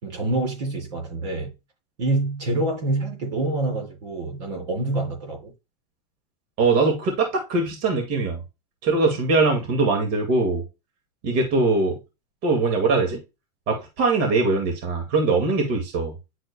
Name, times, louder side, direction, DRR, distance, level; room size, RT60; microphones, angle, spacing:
voice 1, 0.0-1.5 2.0-5.5, right 2 dB, 85° right, 3.2 m, -26 dB
voice 2, 6.6-8.4 8.8-10.6 11.2-12.0 12.4-13.2 13.7-16.1, right 3 dB, 50° right, 2.1 m, -21 dB
10.0 x 4.4 x 2.2 m
supercardioid pair, 130°, 21 cm